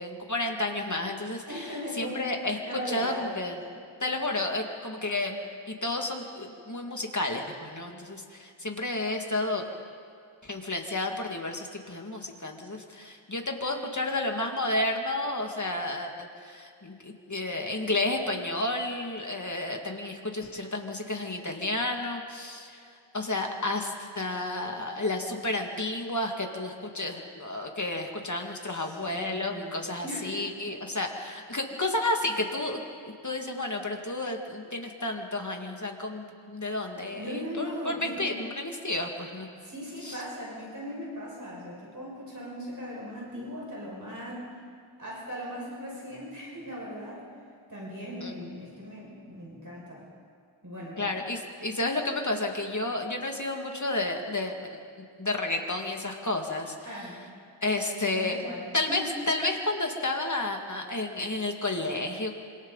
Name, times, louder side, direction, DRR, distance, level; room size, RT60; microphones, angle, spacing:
voice 1, 0.0-1.7 2.0-2.6 2.9-3.6 4.0-9.6 10.4-32.8 33.2-39.5 40.0-40.2 48.2-48.3 51.0-54.8 55.2-56.7 57.6-58.4 58.7-62.4, left 2 dB, 35° left, 2 dB, 2.3 m, -31 dB
voice 2, 1.5-2.3 2.6-3.3 28.7-30.4 37.0-38.4 39.6-44.5 45.0-47.2 47.7-50.0 50.6-51.1 56.8-57.2 58.1-58.6 58.9-59.2, equal, 40° right, -5 dB, 5.9 m, -38 dB
26.0 x 26.0 x 4.1 m, 2.2 s
wide cardioid pair, 65°, 50 cm